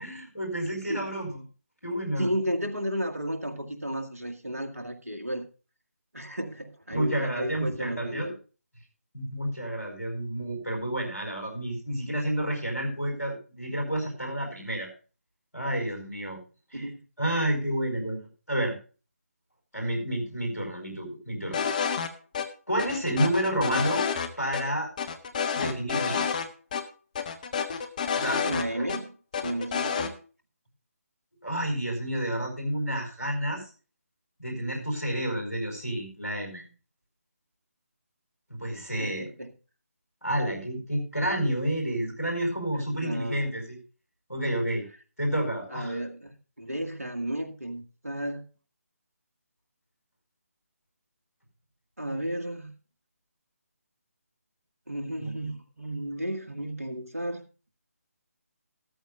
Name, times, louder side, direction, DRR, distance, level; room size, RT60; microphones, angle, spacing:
voice 1, 0.0-1.4 1.8-2.3 6.9-8.3 9.1-14.9 15.5-16.4 16.7-16.9 17.2-18.8 19.7-21.7 22.7-24.0 24.4-24.9 25.5-26.3 28.1-28.4 28.7-28.8 31.4-33.7 34.4-36.6 38.5-39.3 40.2-43.8 44.3-44.8 45.2-45.9 55.1-55.3, right 1 dB, 90° left, 2 dB, 4.9 m, -30 dB
voice 2, 2.2-5.4 6.1-8.4 16.7-17.0 28.4-29.2 29.4-30.2 39.0-39.5 43.0-43.5 45.7-48.5 52.0-52.7 54.9-57.5, equal, 75° right, 4 dB, 1.9 m, -33 dB
sound 1, 21.5-22.1 22.3-22.5 22.8-24.3 24.5-24.6 25.0-26.5 26.7-26.8 27.2-29.0 29.3-30.1, left 6 dB, 30° left, 1.3 m, -29 dB
13.5 x 13.5 x 2.5 m, 0.35 s
figure-of-eight pair, 150°, 8 cm